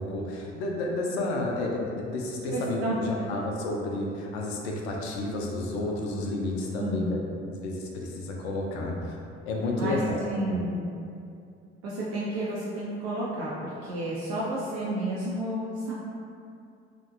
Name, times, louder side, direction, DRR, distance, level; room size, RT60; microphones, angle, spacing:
voice 1, 0.0-7.2 7.6-9.2 9.5-10.2 10.5-10.6, left 2 dB, 70° left, -1 dB, 0.5 m, -31 dB
voice 2, 2.5-3.0 6.8-7.2 9.8-10.8 11.8-15.9, right 1 dB, 55° right, -7 dB, 0.5 m, -31 dB
2.5 x 2.1 x 2.6 m, 2.5 s
figure-of-eight pair, 50°, 33 cm